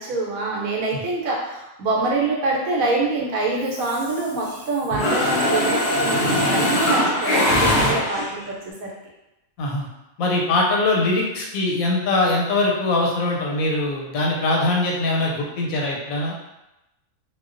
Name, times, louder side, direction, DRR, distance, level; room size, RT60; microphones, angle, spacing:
voice 1, 0.0-8.9, right 3 dB, 80° right, -2 dB, 1.1 m, -25 dB
Mechanisms, 3.7-4.6 4.9-8.5, left 1 dB, 60° left, 0.8 m, -21 dB
voice 2, 10.2-16.3, left 2 dB, 85° left, -2 dB, 1.0 m, -22 dB
2.3 x 2.2 x 2.4 m, 0.94 s
omnidirectional pair, 1.4 m